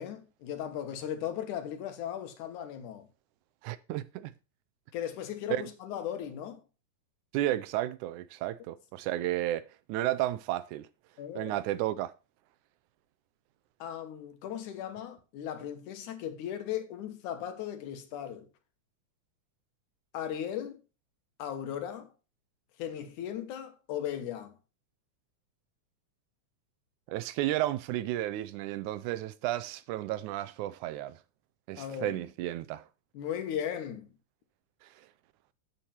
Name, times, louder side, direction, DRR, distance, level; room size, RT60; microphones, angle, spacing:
voice 1, 0.0-3.1 4.9-6.6 11.2-11.6 13.8-18.5 20.1-20.8 21.4-22.1 22.8-24.6 31.8-32.2 33.1-34.1, left 10 dB, 85° left, 2.6 m, -37 dB
voice 2, 3.6-4.3 5.5-5.7 7.3-9.6 9.9-10.9 11.4-12.1 27.1-31.2 31.7-32.8, right 14 dB, 90° right, 2.1 m, -32 dB
8.2 x 7.4 x 4.3 m
omnidirectional pair, 3.4 m